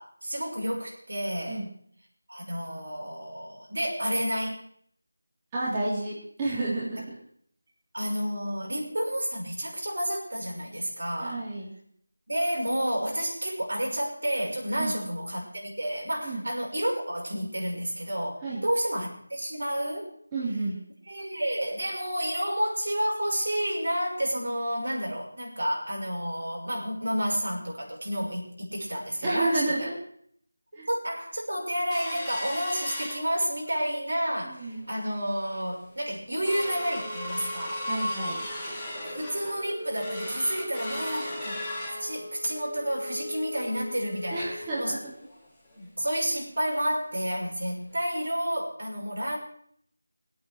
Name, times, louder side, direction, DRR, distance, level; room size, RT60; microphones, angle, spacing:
voice 1, 0.0-1.6 2.3-4.6 7.9-11.4 12.3-20.1 21.1-29.7 30.9-37.9 39.0-44.9 45.8-49.4, equal, 70° right, -1 dB, 6.0 m, -30 dB
voice 2, 5.5-7.2 11.2-11.7 14.8-14.9 16.2-16.4 18.4-18.6 20.3-20.8 29.2-29.9 30.8-30.9 34.4-34.8 37.9-38.4 44.3-45.0, right 2 dB, 15° right, -8 dB, 3.4 m, -30 dB
sound 1, 31.9-33.8 34.2-34.3 34.6-35.0 35.5-35.6 35.9-46.4 46.7-46.8 47.2-47.4 47.9-48.0, left 1 dB, 5° left, 3.4 m, -37 dB
20.5 x 8.7 x 6.5 m, 0.63 s
figure-of-eight pair, 170°, 0 cm